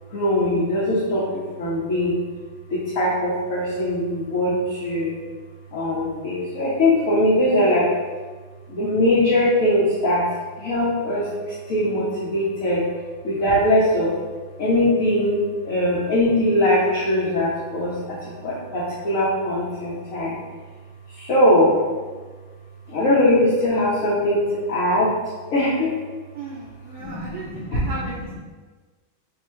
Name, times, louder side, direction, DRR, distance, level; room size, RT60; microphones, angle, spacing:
voice 1, 0.1-2.2 2.7-5.2 5.7-7.9 8.7-12.8 13.2-14.1 14.6-20.4 21.1-21.8 22.9-24.4 24.7-25.1 25.5-25.9 27.0-27.9, left 1 dB, 60° left, -8 dB, 0.8 m, -21 dB
voice 2, 26.3-27.4 27.7-28.4, right 3 dB, 85° right, -5 dB, 0.8 m, -35 dB
3.5 x 2.1 x 4.3 m, 1.4 s
omnidirectional pair, 2.2 m